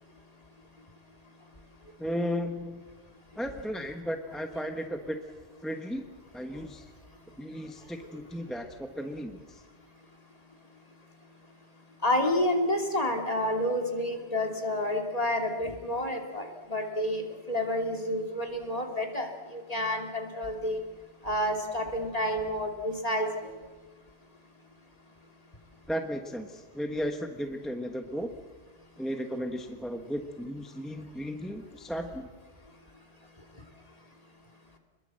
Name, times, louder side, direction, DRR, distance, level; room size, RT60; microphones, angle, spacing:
voice 1, 2.0-2.8 3.4-5.2 5.6-6.1 6.3-6.9 7.4-9.6 25.9-28.3 29.0-32.3, equal, ahead, 5 dB, 1.2 m, -35 dB
voice 2, 12.0-20.8 21.2-23.6, left 1 dB, 30° left, 2 dB, 2.8 m, -29 dB
27.0 x 21.5 x 7.7 m, 1.4 s
omnidirectional pair, 1.2 m